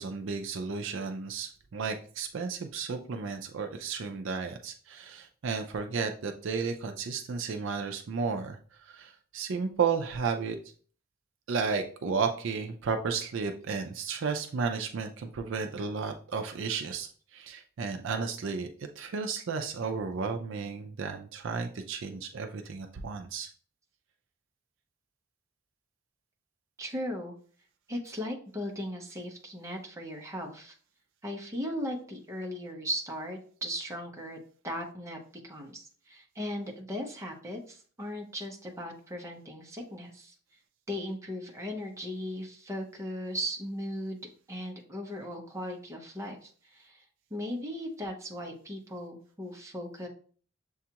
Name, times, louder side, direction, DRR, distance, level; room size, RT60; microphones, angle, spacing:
voice 1, 0.0-10.6 11.5-18.7 19.0-23.5, right 5 dB, 55° right, 5 dB, 0.4 m, -33 dB
voice 2, 26.8-27.3 27.9-30.7 31.2-34.4 34.6-35.2 35.4-40.3 40.9-44.2 44.5-47.0 47.3-50.1, equal, 15° right, 1 dB, 0.7 m, -37 dB
6.8 x 2.4 x 2.8 m, 0.44 s
head